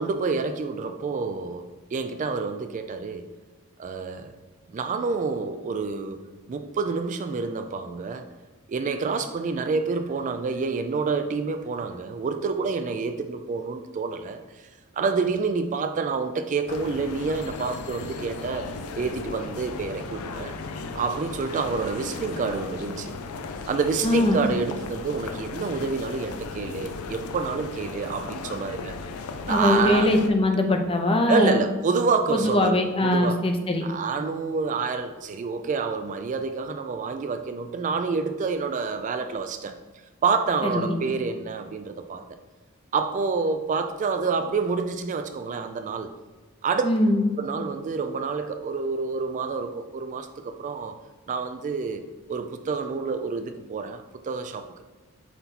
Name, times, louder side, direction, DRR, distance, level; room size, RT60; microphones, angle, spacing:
voice 1, 0.0-3.3 3.8-4.3 4.7-6.2 6.5-8.2 8.7-14.7 15.0-20.5 20.9-23.1 23.7-29.0 29.4-30.1 31.3-33.4 33.8-39.8 40.2-42.2 42.9-46.1 46.6-47.0 47.4-51.0 51.3-52.0 52.3-54.8, right 4 dB, 35° right, 7 dB, 0.3 m, -28 dB
sound 1, 16.7-30.3, left 4 dB, 75° left, 0.5 m, -36 dB
voice 2, 24.0-24.4 29.5-31.6 32.3-33.8 40.6-40.9 46.8-47.2, left 1 dB, 25° left, 4 dB, 0.6 m, -21 dB
5.9 x 4.0 x 4.1 m, 1.3 s
head